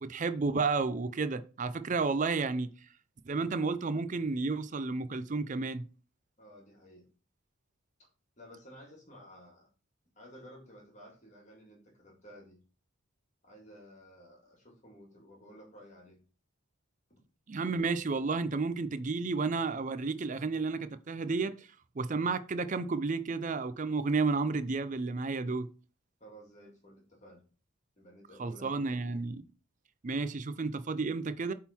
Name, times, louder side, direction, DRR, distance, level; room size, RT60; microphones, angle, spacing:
voice 1, 0.0-2.7 3.3-5.8 17.5-21.7 22.0-25.7 28.4-29.4 30.0-31.5, right 4 dB, 35° right, 0.4 m, -32 dB
voice 2, 6.4-7.1 8.4-9.7 10.2-12.6 13.4-16.2 26.2-27.4 28.0-29.0, equal, 35° left, 2.0 m, -54 dB
8.7 x 3.7 x 4.2 m
head